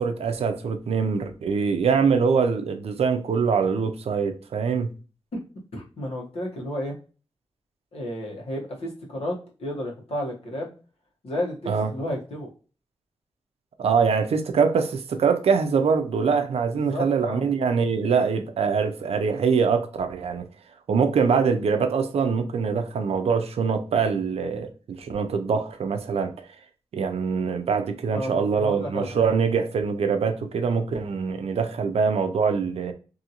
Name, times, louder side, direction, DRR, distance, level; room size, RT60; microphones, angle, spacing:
voice 1, 0.0-4.9 11.7-11.9 13.8-20.5 20.9-26.3 26.9-32.9, right 5 dB, 85° right, 0.5 m, -23 dB
voice 2, 5.7-6.9 7.9-10.7 11.2-12.5 16.7-17.4 28.1-29.2, left 1 dB, 80° left, 1.1 m, -32 dB
2.8 x 2.7 x 2.5 m
wide cardioid pair, 145°, 10 cm